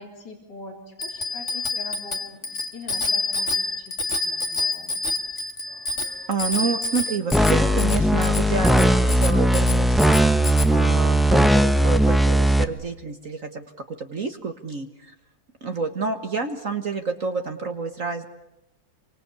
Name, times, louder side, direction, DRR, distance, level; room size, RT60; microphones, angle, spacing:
voice 1, 0.0-5.0, left 3 dB, 65° left, 3 dB, 4.3 m, -42 dB
Bicycle bell, 1.0-10.7, left 3 dB, 40° left, 2.2 m, -28 dB
voice 2, 6.3-10.2 10.7-14.9 15.6-18.3, right 4 dB, 45° right, 6 dB, 1.8 m, -29 dB
sound 1, 7.3-12.6, right 1 dB, ahead, 1.0 m, -18 dB
28.5 x 25.0 x 8.3 m, 0.84 s
omnidirectional pair, 2.0 m